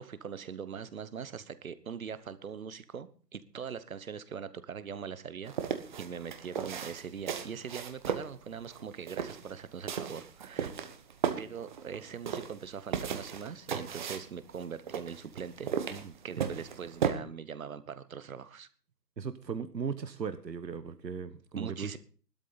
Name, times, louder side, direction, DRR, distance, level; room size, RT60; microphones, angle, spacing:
voice 1, 0.0-10.7 11.4-15.7 16.2-18.7 21.6-22.0, right 7 dB, 55° right, 14 dB, 1.2 m, -42 dB
sound 1, 5.4-17.1, right 7 dB, 30° right, 1.1 m, -36 dB
voice 2, 19.2-22.0, right 6 dB, 85° right, 11 dB, 1.3 m, -37 dB
15.5 x 12.5 x 4.0 m, 0.40 s
figure-of-eight pair, 150°, 49 cm